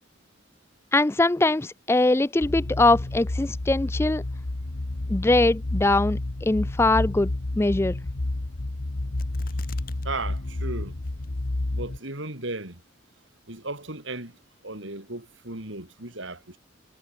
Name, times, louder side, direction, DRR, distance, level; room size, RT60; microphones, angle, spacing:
voice 1, 0.9-4.2 5.1-7.3 7.6-8.0, left 2 dB, 10° left, 0.3 m, -22 dB
sound 1, 2.4-12.0, left 2 dB, 70° left, 1.2 m, -30 dB
sound 2, 9.2-10.1 10.4-10.5 11.0-11.5 12.0-12.1, left 4 dB, 45° left, 6.8 m, -45 dB
voice 2, 10.0-11.0 11.7-12.8 13.5-16.6, right 2 dB, 70° right, 5.6 m, -36 dB
head